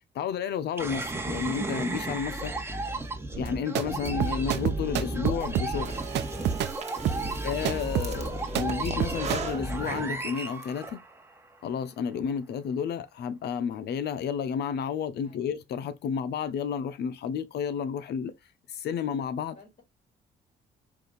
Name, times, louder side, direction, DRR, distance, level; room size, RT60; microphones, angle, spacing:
voice 1, 0.1-2.5 3.4-5.9 7.4-11.0 11.6-18.3 18.7-19.6, left 7 dB, 70° left, 0.8 m, -31 dB
sound 1, 0.8-11.4, right 2 dB, 15° right, 1.3 m, -33 dB
voice 2, 2.5-2.6 15.2-15.4 19.5-19.8, left 3 dB, 55° left, 3.0 m, -56 dB
sound 2, 3.3-9.4, right 11 dB, 85° right, 0.6 m, -30 dB
Breathing, 5.7-10.7, right 5 dB, 40° right, 1.3 m, -41 dB
4.9 x 2.7 x 3.9 m
cardioid pair, 90°, 17 cm